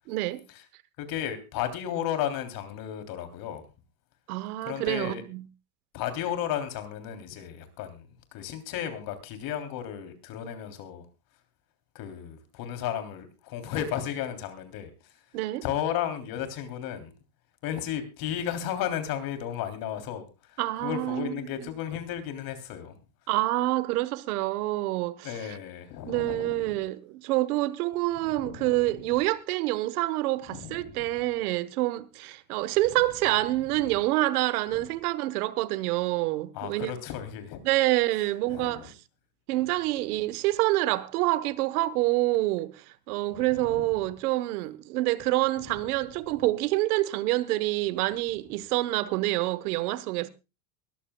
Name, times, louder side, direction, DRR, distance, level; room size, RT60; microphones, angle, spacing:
voice 1, 0.1-0.4 4.3-5.4 15.3-15.6 20.6-21.5 23.3-25.6 26.0-37.0 37.6-38.9 39.5-50.3, right 17 dB, 75° right, 1.3 m, -27 dB
voice 2, 1.0-3.6 4.6-5.2 5.9-8.1 8.3-11.0 11.9-14.9 15.6-17.1 17.6-20.3 20.8-22.9 25.2-26.8 28.2-28.7 30.5-31.1 33.8-33.9 34.7-34.8 36.5-37.6 38.5-38.9 43.7-43.8, left 10 dB, 50° left, 3.4 m, -34 dB
23.0 x 14.0 x 2.3 m
supercardioid pair, 130°, 45 cm